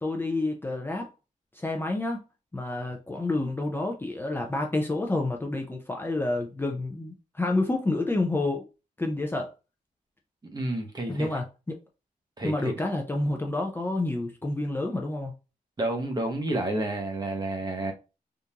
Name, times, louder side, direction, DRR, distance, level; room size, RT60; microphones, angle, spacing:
voice 1, 0.0-1.1 1.5-2.2 2.5-8.7 9.0-9.5 11.1-11.8 12.4-15.3, left 2 dB, 15° left, 0.5 m, -29 dB
voice 2, 10.5-11.3 12.4-12.8 15.8-17.9, right 1 dB, 30° right, 0.9 m, -30 dB
3.6 x 2.6 x 2.8 m
wide cardioid pair, 120°, 15 cm